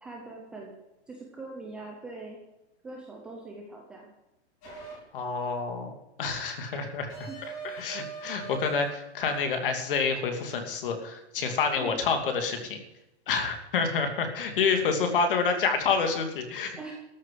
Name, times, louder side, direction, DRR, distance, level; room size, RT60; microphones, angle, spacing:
voice 1, 0.0-0.7 1.1-2.4 2.8-4.1 7.3-7.4 11.8-12.0 15.1-15.3 16.8-16.9, right 3 dB, 5° right, -1 dB, 0.5 m, -42 dB
sound 1, 4.6-5.0 7.1-8.9 9.2-9.5, right 6 dB, 25° left, 4.5 m, -41 dB
voice 2, 5.1-5.9 6.2-7.3 7.6-12.8 13.3-16.7, left 5 dB, 50° left, 6 dB, 2.7 m, -28 dB
14.0 x 8.0 x 7.6 m, 0.92 s
hypercardioid pair, 175°, 34 cm